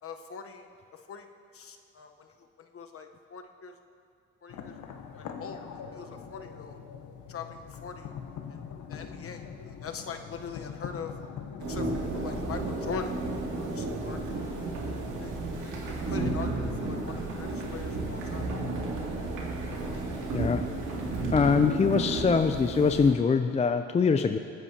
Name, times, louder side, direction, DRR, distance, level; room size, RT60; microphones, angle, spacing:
voice 1, 0.0-1.3 1.5-3.7 4.4-4.7 5.2-6.8 7.3-8.1 8.5-8.6 8.9-11.1 11.7-14.5 15.2-15.8 16.1-18.5, left 5 dB, 50° left, 5 dB, 1.0 m, -42 dB
sound 1, 4.5-13.0, left 7 dB, 80° left, 0.9 m, -43 dB
sound 2, 11.6-23.1, right 2 dB, 80° right, 2.4 m, -32 dB
voice 2, 20.3-20.7 21.3-24.4, left 5 dB, 20° left, 8 dB, 0.4 m, -23 dB
20.5 x 9.6 x 2.9 m, 2.4 s
cardioid pair, 90°, 30 cm